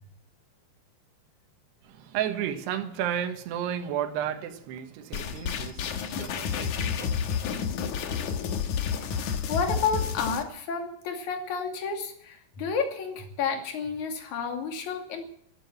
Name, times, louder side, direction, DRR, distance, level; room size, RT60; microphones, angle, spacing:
voice 1, 1.8-7.3, right 10 dB, 75° right, 3.3 m, -33 dB
sound 1, 5.1-10.4, left 7 dB, 65° left, 2.0 m, -30 dB
voice 2, 9.5-15.2, left 5 dB, 50° left, 3.5 m, -31 dB
12.5 x 12.5 x 8.7 m
omnidirectional pair, 5.1 m